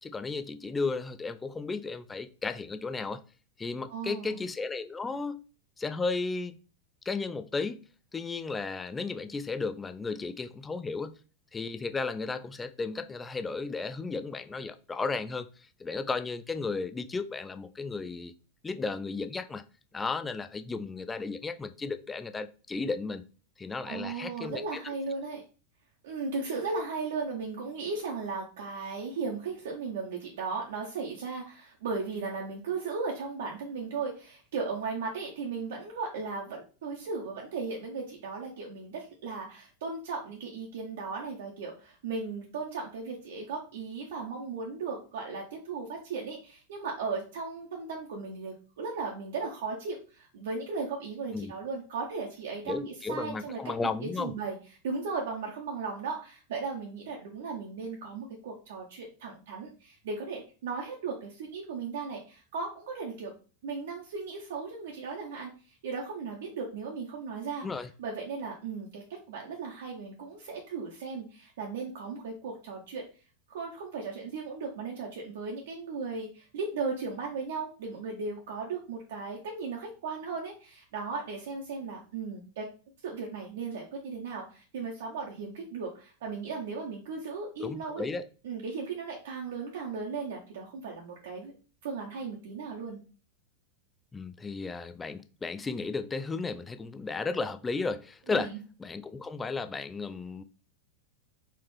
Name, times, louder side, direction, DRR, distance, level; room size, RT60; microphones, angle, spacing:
voice 1, 0.0-3.2 3.6-5.4 5.8-6.6 7.1-7.9 8.1-11.2 11.5-18.3 18.6-19.6 19.9-23.2 23.6-24.9 51.3-51.5 52.7-54.3 67.6-67.9 87.6-88.3 94.1-98.5 98.8-100.4, left 4 dB, 15° left, 0.3 m, -34 dB
voice 2, 3.9-4.4 23.9-25.4 26.0-53.6 54.0-54.6 54.8-63.3 63.6-65.5 65.8-67.7 68.0-73.0 73.5-82.6 83.0-88.0 88.4-91.5 91.8-93.0 98.3-98.6, right 4 dB, 55° right, 0.7 m, -36 dB
4.2 x 2.4 x 3.2 m
figure-of-eight pair, 90°, 0 cm